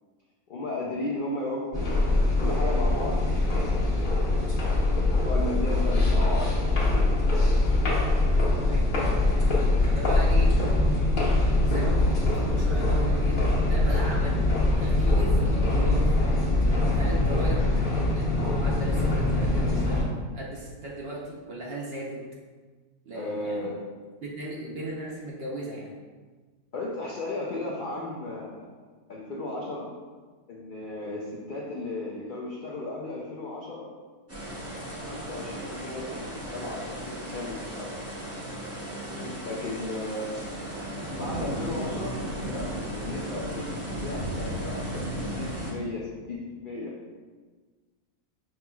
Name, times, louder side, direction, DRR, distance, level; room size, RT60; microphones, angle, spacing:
voice 1, 0.5-4.2 4.9-7.1 23.1-23.8 26.7-28.7 29.1-29.9 30.5-33.9 35.0-37.9 39.4-40.4 41.1-46.9, left 2 dB, 85° left, -4 dB, 0.4 m, -35 dB
sound 1, 1.7-20.0, left 2 dB, 40° left, 1.1 m, -23 dB
voice 2, 8.6-9.3 9.8-10.6 11.6-14.5 14.8-17.8 18.1-22.2 23.0-23.7 24.2-25.9 39.1-39.4, right 1 dB, 50° right, -4 dB, 0.8 m, -37 dB
sound 2, 34.3-45.7, right 1 dB, 20° right, 0.4 m, -35 dB
6.0 x 2.9 x 2.3 m, 1.4 s
omnidirectional pair, 1.6 m